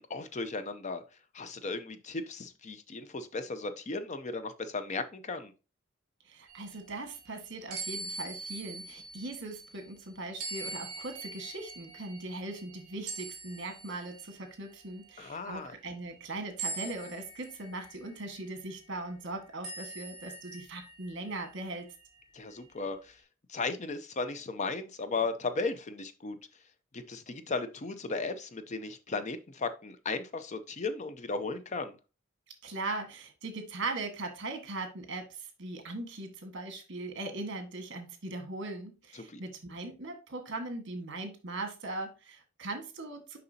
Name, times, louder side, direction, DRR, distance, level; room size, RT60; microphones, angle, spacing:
voice 1, 0.1-1.0 1.3-5.5 15.2-15.7 22.3-23.2 23.5-26.4 26.9-32.0 39.1-39.4, left 3 dB, 35° left, 10 dB, 0.5 m, -36 dB
voice 2, 6.3-21.9 32.6-43.4, right 2 dB, 60° right, 6 dB, 1.4 m, -39 dB
sound 1, 6.5-9.9 10.4-14.3 14.8-15.2 16.6-18.7 19.6-21.6, right 3 dB, 40° right, 3.4 m, -43 dB
6.7 x 5.3 x 2.7 m, 0.31 s
head